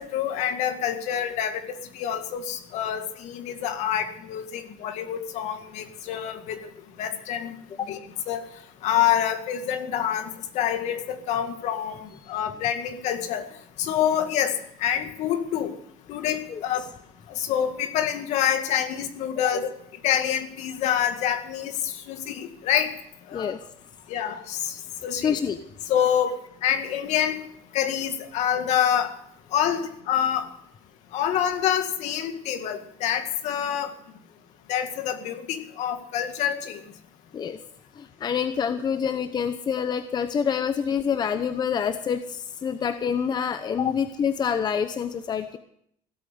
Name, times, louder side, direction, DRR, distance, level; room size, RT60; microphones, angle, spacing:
voice 1, 0.0-6.6 7.0-7.5 7.9-8.0 8.3-8.4 8.8-10.3 10.5-13.4 13.8-14.6 14.8-15.7 16.1-16.9 17.3-19.7 20.0-22.9 23.3-23.5 24.1-25.4 25.9-26.4 26.6-27.4 27.7-29.1 29.5-30.5 31.1-33.9 34.7-36.8, left 9 dB, 65° left, 7 dB, 2.0 m, -26 dB
voice 2, 25.2-25.6 37.3-37.6 38.0-45.6, left 7 dB, 35° left, 10 dB, 0.8 m, -27 dB
16.5 x 8.3 x 7.9 m, 0.71 s
cardioid pair, 120°, 13 cm